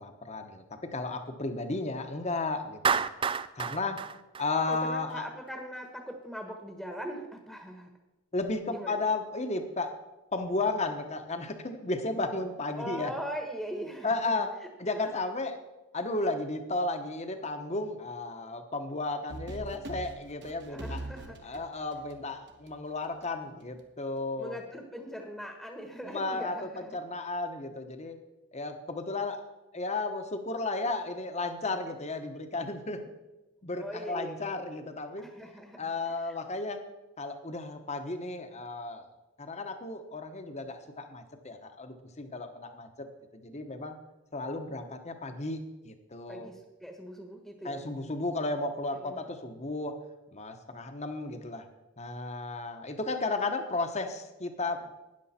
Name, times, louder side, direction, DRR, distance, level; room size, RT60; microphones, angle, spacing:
voice 1, 0.0-3.0 3.5-4.0 4.4-5.3 8.3-9.9 10.3-13.1 14.0-14.5 14.8-15.6 15.9-21.0 21.4-24.6 26.0-28.2 28.5-29.4 29.7-33.0 33.6-35.2 35.8-36.8 37.2-39.1 39.4-43.1 43.3-44.0 44.3-46.5 47.6-49.9 50.3-51.7 52.0-54.8, left 2 dB, 30° left, 7 dB, 1.1 m, -34 dB
Clapping, 2.8-5.1, right 6 dB, 25° right, 0.3 m, -30 dB
voice 2, 4.7-7.9 8.7-9.0 12.8-14.3 14.9-15.2 20.7-21.6 24.4-27.0 33.8-34.4 35.2-36.4 46.3-47.8 48.9-49.4, equal, ahead, 3 dB, 1.2 m, -41 dB
sound 1, 19.3-22.7, right 1 dB, 55° right, 1.3 m, -41 dB
13.0 x 9.9 x 4.3 m, 1.0 s
head